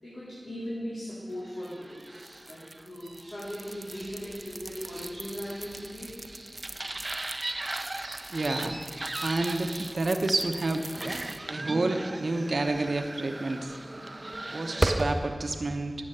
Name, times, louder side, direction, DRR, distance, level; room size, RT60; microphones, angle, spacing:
voice 1, 0.0-6.1, equal, 75° left, -11 dB, 3.6 m, -39 dB
sound 1, 1.6-15.2, right 2 dB, 45° right, 0.6 m, -36 dB
voice 2, 8.3-8.8 9.2-10.8 11.5-13.8 14.5-16.0, right 2 dB, 80° right, 5 dB, 0.8 m, -29 dB
13.5 x 7.5 x 6.7 m, 2.1 s
wide cardioid pair, 45°, 0 cm